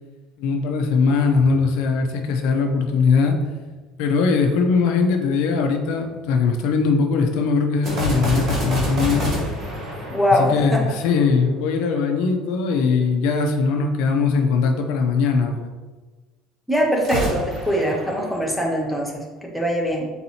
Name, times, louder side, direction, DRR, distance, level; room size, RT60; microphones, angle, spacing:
voice 1, 0.4-3.4 4.0-9.5 10.3-15.7, left 4 dB, 60° left, 4 dB, 0.5 m, -20 dB
sound 1, 7.8-11.3 17.0-19.1, equal, 35° right, 0.9 m, -27 dB
voice 2, 10.1-10.8 16.7-20.1, equal, ahead, -2 dB, 0.5 m, -22 dB
4.2 x 4.0 x 2.7 m, 1.3 s
cardioid pair, 180°, 0 cm